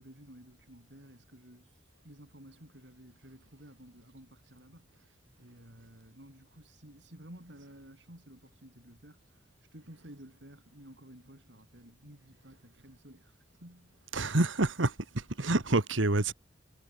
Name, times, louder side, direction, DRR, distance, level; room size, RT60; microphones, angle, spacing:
voice 1, 0.0-1.7 2.0-5.1 5.4-9.2 9.7-13.9, right 1 dB, 65° right, 5.7 m, -53 dB
voice 2, 14.1-16.3, right 2 dB, 85° right, 1.8 m, -28 dB
head